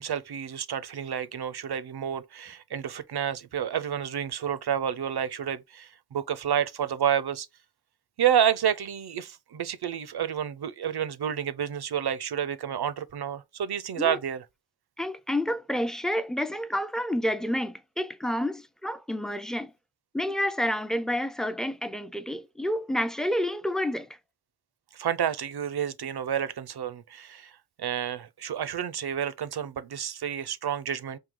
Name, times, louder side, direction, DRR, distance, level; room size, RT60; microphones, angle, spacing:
voice 1, 0.0-7.5 8.2-14.4 24.9-27.5 27.8-31.2, right 9 dB, 75° right, 0.5 m, -29 dB
voice 2, 15.0-19.7 20.1-24.1, left 1 dB, ahead, 0.3 m, -29 dB
3.7 x 2.7 x 3.5 m
wide cardioid pair, 50°, 39 cm